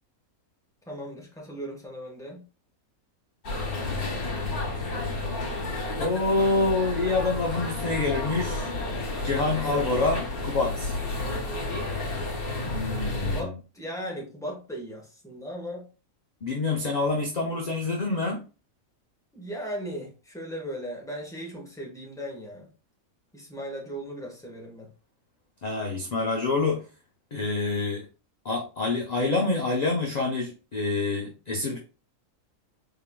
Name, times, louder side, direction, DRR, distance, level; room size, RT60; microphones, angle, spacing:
voice 1, 0.9-2.4 13.3-15.9 19.3-22.7 23.3-24.9, equal, 5° left, -1 dB, 1.0 m, -37 dB
sound 1, 3.4-13.4, left 2 dB, 85° left, 1.9 m, -31 dB
voice 2, 6.0-8.7 9.2-11.0 12.6-13.5 16.4-18.5 25.6-26.8 27.3-28.0 28.4-31.8, left 3 dB, 45° left, 0 dB, 0.5 m, -27 dB
4.3 x 3.7 x 2.2 m, 0.34 s
omnidirectional pair, 1.5 m